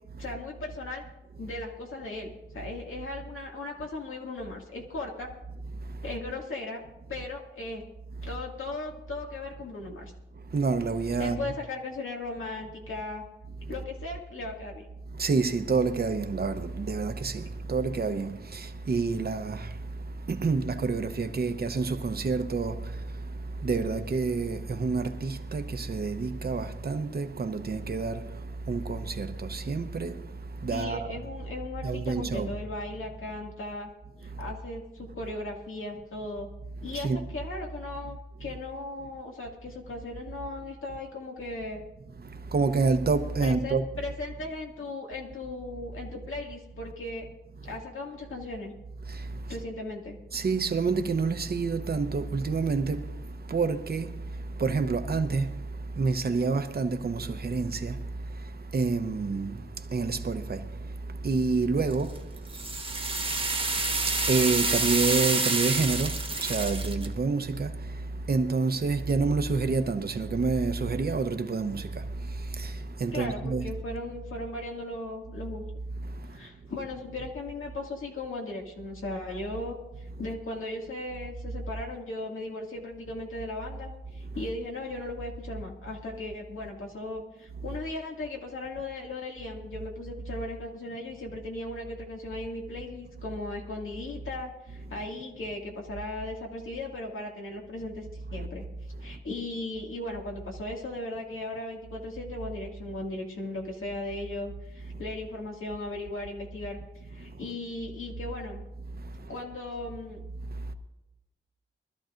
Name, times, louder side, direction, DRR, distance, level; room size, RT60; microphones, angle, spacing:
voice 1, 0.2-1.1 1.4-5.3 6.0-6.8 7.1-7.8 8.2-10.1 11.2-13.2 13.7-14.9 30.7-33.9 34.2-36.5 36.8-41.8 43.4-47.3 47.6-48.7 49.5-50.2 73.1-75.6 76.3-98.6 99.0-106.8 107.1-108.6 109.3-110.2, left 2 dB, 85° left, 2.2 m, -37 dB
voice 2, 10.3-11.4 13.6-13.7 15.1-31.2 31.8-32.5 34.3-34.4 36.9-37.2 42.2-43.8 49.0-49.6 50.3-73.7 76.0-76.7 84.2-84.4 87.6-87.7 98.4-98.5 99.0-99.2 104.9-105.0 107.2-107.4 108.9-109.3 110.4-110.7, right 4 dB, 50° right, 0.9 m, -29 dB
sound 1, 61.9-67.1, right 3 dB, 25° right, 1.2 m, -28 dB
23.5 x 13.0 x 2.6 m
wide cardioid pair, 130°, 20 cm